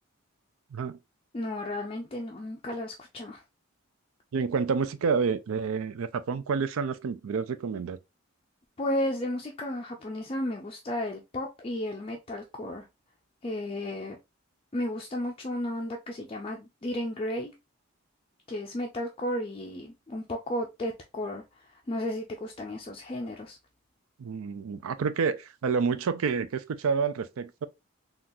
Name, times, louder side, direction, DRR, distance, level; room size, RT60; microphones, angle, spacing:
voice 1, 1.3-3.4 8.8-12.8 13.4-14.2 14.7-17.5 18.5-23.6, left 1 dB, 25° left, 0.4 m, -33 dB
voice 2, 4.3-8.0 24.2-27.7, right 5 dB, 75° right, 0.4 m, -29 dB
3.7 x 2.3 x 2.6 m
head